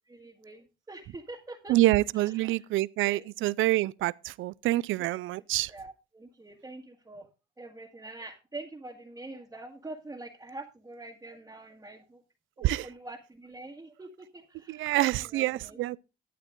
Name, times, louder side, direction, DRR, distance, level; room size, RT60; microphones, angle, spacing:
voice 1, 0.1-1.8 2.1-2.7 3.0-3.3 5.7-7.3 7.6-12.2 12.6-15.8, right 2 dB, 20° right, 1.7 m, -45 dB
voice 2, 1.7-5.7 12.6-12.9 14.7-16.0, right 17 dB, 80° right, 0.4 m, -26 dB
12.0 x 8.6 x 3.7 m
cardioid pair, 90°, 20 cm